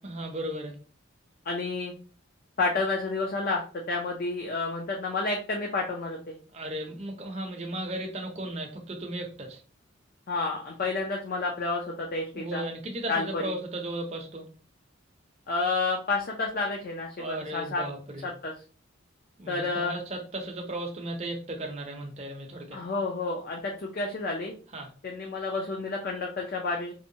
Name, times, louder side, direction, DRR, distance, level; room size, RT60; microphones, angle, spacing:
voice 1, 0.0-0.8 6.5-9.6 12.3-14.5 17.2-18.3 19.4-22.8 24.7-24.9, right 1 dB, 30° right, 2 dB, 0.5 m, -35 dB
voice 2, 1.5-1.9 2.6-6.4 10.3-12.6 13.1-13.5 15.5-17.8 18.2-18.5 19.5-20.0 22.7-24.5 25.0-26.9, left 3 dB, 45° left, -1 dB, 0.4 m, -30 dB
2.7 x 2.1 x 2.6 m, 0.39 s
head